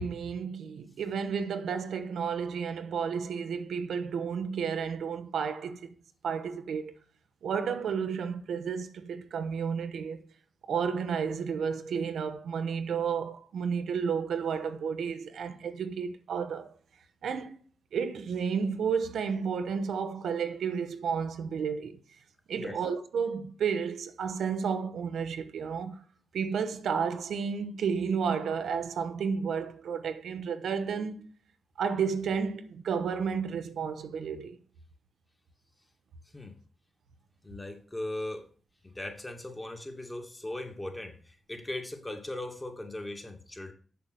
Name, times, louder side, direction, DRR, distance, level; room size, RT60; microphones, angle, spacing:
voice 1, 0.0-5.9 6.2-7.0 7.4-10.3 10.7-16.7 17.2-17.6 17.9-22.0 22.5-26.0 26.3-31.3 31.8-34.6, right 6 dB, 80° right, 0.8 m, -32 dB
voice 2, 37.4-38.5 38.8-43.7, left 1 dB, 20° left, 2.4 m, -39 dB
6.9 x 5.8 x 6.3 m
supercardioid pair, 40°, 0 cm